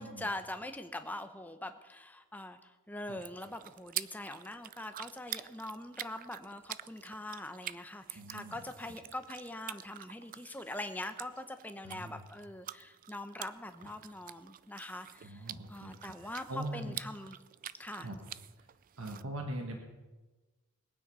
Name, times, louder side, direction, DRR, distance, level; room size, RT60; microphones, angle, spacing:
voice 1, 0.0-17.4 17.8-18.1, left 1 dB, 10° left, 8 dB, 0.8 m, -43 dB
sound 1, 3.1-19.2, right 12 dB, 40° right, 0.3 m, -47 dB
voice 2, 8.1-8.6 11.8-12.2 15.2-15.9 16.5-17.0 18.0-18.2 19.0-19.8, right 1 dB, 65° right, 3 dB, 1.6 m, -41 dB
20.5 x 9.4 x 5.6 m, 1.2 s
head